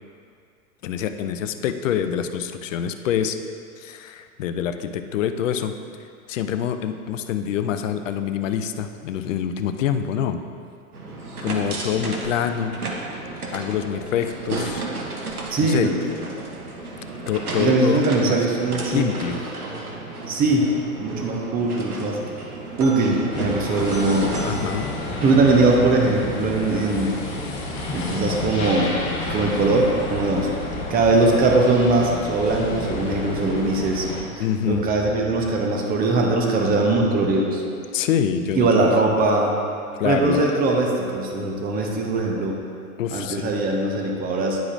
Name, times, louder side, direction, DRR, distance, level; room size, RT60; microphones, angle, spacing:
voice 1, 0.8-3.4 3.8-5.7 6.3-10.4 11.4-12.8 13.5-14.9 15.2-15.9 17.3-18.4 18.9-19.4 24.4-24.9 34.4-34.8 37.9-38.9 40.0-40.4 43.0-43.4, left 9 dB, 60° left, 9 dB, 0.6 m, -26 dB
sound 1, 10.9-25.8, right 2 dB, 90° right, 1.0 m, -32 dB
voice 2, 15.5-15.9 17.6-19.1 20.3-20.7 21.0-22.2 22.8-24.3 25.2-27.2 27.9-28.9 29.3-30.5 30.9-34.1 34.7-37.6 38.5-39.5 40.0-42.6 43.1-44.6, right 2 dB, 20° right, 0 dB, 0.8 m, -21 dB
sound 2, 23.3-34.2, left 2 dB, 40° left, 1.6 m, -30 dB
10.0 x 4.8 x 2.6 m, 2.4 s
figure-of-eight pair, 100°, 43 cm